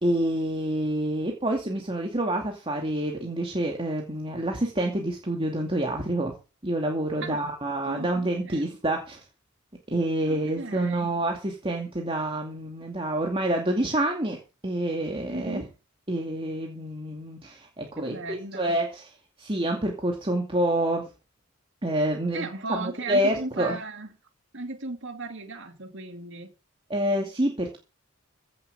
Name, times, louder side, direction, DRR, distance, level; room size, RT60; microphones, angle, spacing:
voice 1, 0.0-6.3 6.6-9.2 9.9-15.6 16.1-19.1 19.4-21.1 21.8-23.8 26.9-27.8, right 1 dB, 25° right, 2.4 m, -27 dB
voice 2, 7.2-7.5 7.8-8.7 10.3-11.1 15.3-15.7 18.0-18.8 22.3-24.1 24.5-26.5, right 2 dB, 65° right, 2.5 m, -36 dB
15.5 x 7.5 x 7.0 m
head